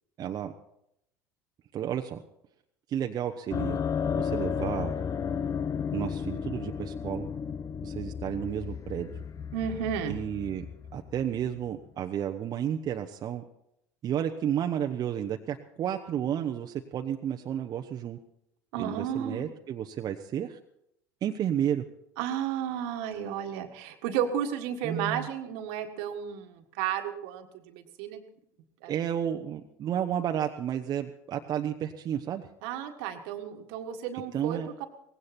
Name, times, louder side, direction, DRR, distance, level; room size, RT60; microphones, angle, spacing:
voice 1, 0.2-0.5 1.7-2.2 2.9-3.8 4.1-5.0 5.9-7.3 7.8-9.2 10.1-10.7 10.9-13.4 14.0-18.2 18.8-20.6 21.2-21.8 24.8-25.3 28.9-32.4 34.3-34.7, right 9 dB, 45° right, 4 dB, 0.9 m, -32 dB
sound 1, 3.5-11.8, left 7 dB, 35° left, 0.7 m, -33 dB
voice 2, 9.5-10.2 18.7-19.5 22.2-28.2 28.8-28.9 32.6-34.9, right 9 dB, 70° right, 7 dB, 1.7 m, -33 dB
18.0 x 16.0 x 4.4 m, 0.79 s
hypercardioid pair, 75°, 9 cm